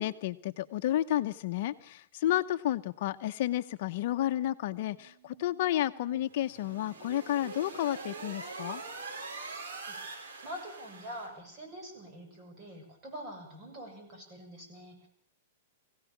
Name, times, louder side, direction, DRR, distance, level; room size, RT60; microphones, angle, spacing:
voice 1, 0.0-8.8, left 13 dB, 55° left, 10 dB, 0.8 m, -31 dB
sound 1, 3.2-8.9, right 8 dB, 90° right, 4.3 m, -61 dB
sound 2, 6.3-11.3, right 4 dB, 70° right, 6.9 m, -43 dB
voice 2, 10.4-15.1, equal, 30° right, 3 dB, 7.5 m, -45 dB
22.5 x 16.5 x 7.4 m, 0.65 s
hypercardioid pair, 145°, 0 cm